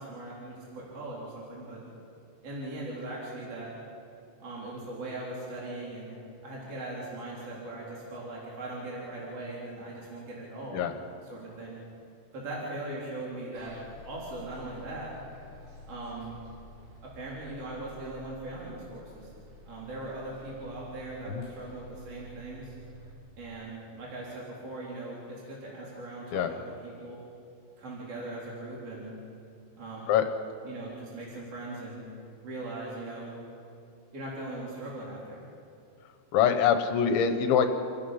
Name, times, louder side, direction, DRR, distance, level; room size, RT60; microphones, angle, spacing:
voice 1, 0.0-1.8 2.4-3.7 4.4-6.1 6.4-10.8 11.2-11.8 12.3-13.8 14.0-15.1 15.9-16.3 17.0-19.3 19.7-22.8 23.4-27.2 27.8-29.1 29.8-30.1 30.6-32.1 32.4-33.3 34.1-35.4, right 2 dB, 35° right, -6 dB, 4.2 m, -40 dB
Bus, 13.5-23.1, left 1 dB, 90° right, 6.8 m, -50 dB
voice 2, 36.3-37.7, left 8 dB, 80° left, 7 dB, 3.3 m, -24 dB
29.0 x 16.0 x 5.7 m, 2.6 s
omnidirectional pair, 5.3 m